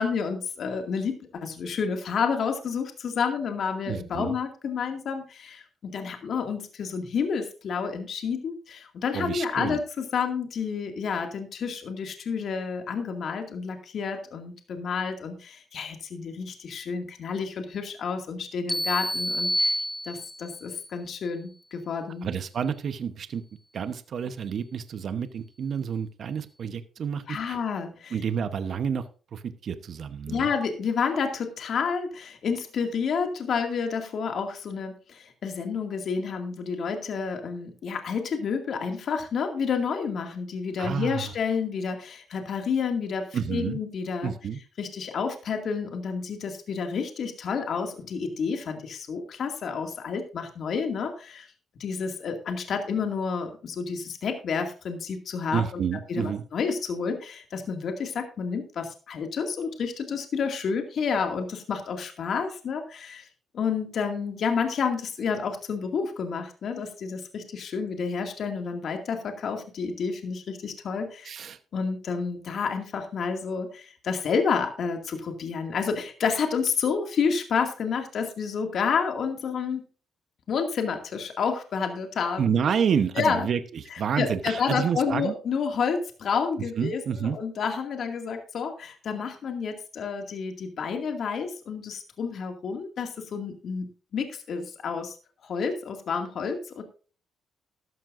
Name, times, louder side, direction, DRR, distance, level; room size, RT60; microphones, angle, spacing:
voice 1, 0.0-19.8 20.1-22.3 27.3-28.2 30.3-44.3 44.8-51.5 51.8-55.8 56.1-63.3 63.5-71.3 71.7-79.8 80.5-82.4 83.2-83.5 83.9-95.2 95.4-96.8, left 5 dB, 60° left, 5 dB, 2.2 m, -30 dB
voice 2, 3.9-4.4 9.1-9.8 22.2-23.4 23.7-27.6 28.1-30.5 40.8-41.3 43.3-43.8 44.2-44.6 55.5-56.4 71.2-71.6 82.4-85.3 86.8-87.4, right 7 dB, 60° right, 11 dB, 1.0 m, -29 dB
sound 1, 18.7-20.6, equal, 5° left, 0.6 m, -28 dB
14.0 x 12.5 x 2.6 m, 0.37 s
cardioid pair, 90°, 0 cm